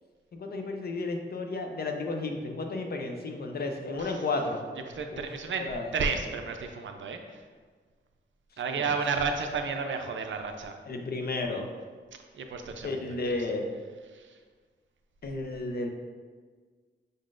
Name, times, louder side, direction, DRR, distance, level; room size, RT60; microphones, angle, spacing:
voice 1, 0.4-4.6 5.1-5.3 5.6-5.9 8.8-8.9 10.9-11.7 12.8-13.6 15.2-15.9, left 3 dB, 55° left, 3 dB, 0.5 m, -32 dB
voice 2, 4.9-5.7 5.9-7.2 8.6-10.7 12.4-13.0, right 5 dB, 75° right, 4 dB, 0.5 m, -31 dB
5.2 x 3.8 x 2.5 m, 1.5 s
wide cardioid pair, 180°, 20 cm